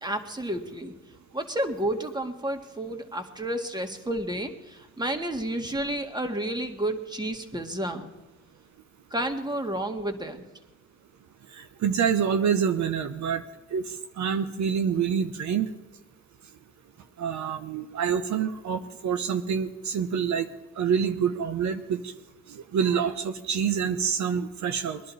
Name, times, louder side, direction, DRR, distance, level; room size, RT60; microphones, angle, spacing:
voice 1, 0.0-0.9 1.3-8.1 9.1-10.4, right 1 dB, 15° right, 5 dB, 1.9 m, -31 dB
voice 2, 11.5-13.4 13.7-15.7 17.2-20.5 20.8-22.1 22.5-25.0, right 7 dB, 75° right, 8 dB, 1.0 m, -27 dB
22.0 x 11.0 x 4.1 m, 1.1 s
cardioid pair, 85°, 29 cm